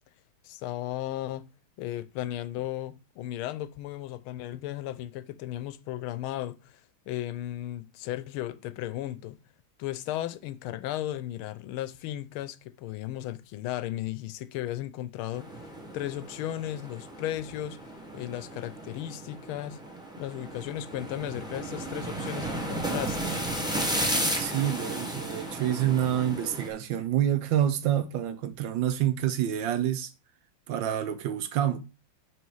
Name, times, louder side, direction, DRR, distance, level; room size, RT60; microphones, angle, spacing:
voice 1, 0.4-1.5 1.8-6.8 7.1-9.4 9.8-15.5 15.9-17.8 18.1-19.8 20.2-23.3, left 13 dB, 85° left, 1.5 m, -35 dB
sound 1, 15.3-26.7, right 1 dB, 5° right, 0.9 m, -34 dB
voice 2, 24.4-30.1 30.7-31.8, right 11 dB, 75° right, 1.3 m, -27 dB
6.2 x 5.2 x 4.7 m
omnidirectional pair, 2.3 m